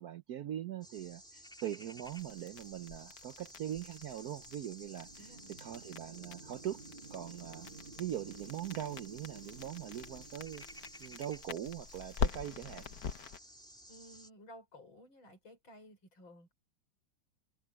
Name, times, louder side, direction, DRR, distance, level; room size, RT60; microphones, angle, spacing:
voice 1, 0.0-6.8 7.1-7.7 8.0-10.7 11.0-12.9, right 11 dB, 65° right, 1.0 m, -42 dB
sound 1, 0.8-14.3, equal, ahead, 2.9 m, -54 dB
sound 2, 2.0-13.4, left 6 dB, 55° left, 1.5 m, -43 dB
sound 3, 4.0-11.7, right 4 dB, 30° right, 1.8 m, -55 dB
voice 2, 5.2-5.5 13.9-16.5, equal, 85° left, 6.7 m, -55 dB
omnidirectional pair, 2.1 m